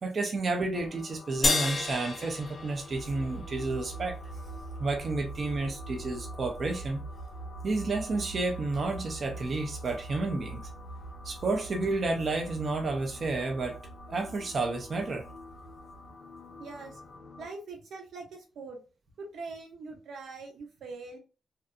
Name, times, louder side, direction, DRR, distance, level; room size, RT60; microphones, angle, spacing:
voice 1, 0.0-4.1 4.8-7.0 7.6-10.6 11.2-13.8 14.1-15.3, right 3 dB, 35° right, 0.4 m, -31 dB
sound 1, 0.7-17.5, left 2 dB, 60° left, 0.7 m, -49 dB
sound 2, 1.4-4.0, left 3 dB, 30° left, 0.4 m, -31 dB
sound 3, 2.9-16.1, right 3 dB, 90° left, 0.8 m, -43 dB
voice 2, 16.6-17.0 17.4-18.8 19.2-21.2, right 3 dB, 80° right, 0.7 m, -42 dB
2.6 x 2.5 x 2.2 m
wide cardioid pair, 165°, 0 cm